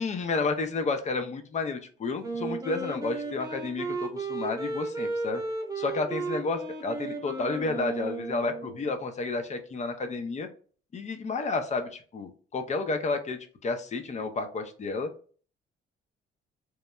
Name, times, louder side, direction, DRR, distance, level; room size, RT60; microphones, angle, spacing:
voice 1, 0.0-5.4 5.8-10.5 10.9-15.1, left 3 dB, 35° left, 7 dB, 0.5 m, -31 dB
Wind instrument woodwind instrument, 2.2-8.9, right 3 dB, 20° right, 0.7 m, -34 dB
3.0 x 2.1 x 2.2 m, 0.42 s
cardioid pair, 90°, 20 cm